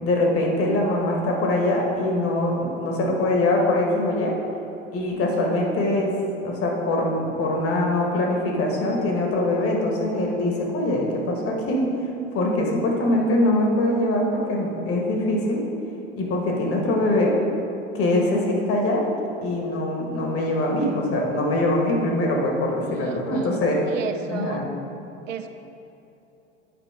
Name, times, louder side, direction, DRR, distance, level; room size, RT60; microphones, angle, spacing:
voice 1, 0.0-4.4 4.9-6.1 6.4-11.9 12.3-15.6 16.2-17.3 17.9-19.0 19.4-23.8 24.3-24.7, left 1 dB, 35° left, -1 dB, 1.6 m, -23 dB
voice 2, 22.8-24.7 25.3-25.5, right 6 dB, 80° right, 8 dB, 0.6 m, -33 dB
9.2 x 4.9 x 3.7 m, 2.9 s
figure-of-eight pair, 85°, 38 cm